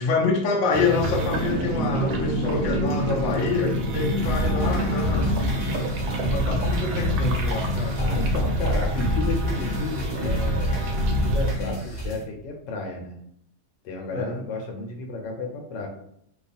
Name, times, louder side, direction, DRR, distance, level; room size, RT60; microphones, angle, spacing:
voice 1, 0.0-8.0 14.1-14.4, left 4 dB, 65° left, 0 dB, 0.8 m, -27 dB
sound 1, 0.7-11.5, right 1 dB, 70° right, 1.0 m, -27 dB
voice 2, 4.2-5.4 8.0-13.2 13.8-15.9, left 3 dB, 85° left, 2 dB, 1.4 m, -33 dB
sound 2, 4.2-12.2, equal, 35° left, 0.5 m, -28 dB
3.0 x 2.3 x 4.1 m, 0.72 s
omnidirectional pair, 1.9 m